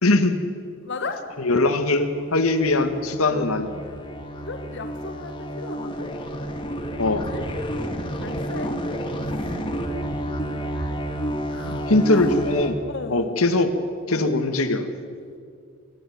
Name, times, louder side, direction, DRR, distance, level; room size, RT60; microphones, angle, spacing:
voice 1, 0.0-0.4 1.4-3.8 7.0-7.3 11.6-12.8 13.1-13.7 14.1-14.9, left 2 dB, 85° left, 7 dB, 1.8 m, -21 dB
voice 2, 0.8-1.2 3.3-3.5 4.4-6.1 7.0-7.4 8.1-8.7 9.3-11.0 11.5-11.9 12.9-13.4 14.1-14.3, left 3 dB, 55° left, 5 dB, 1.3 m, -36 dB
sound 1, 1.3-12.7, equal, 25° left, 1.9 m, -30 dB
27.0 x 14.0 x 9.4 m, 2.3 s
head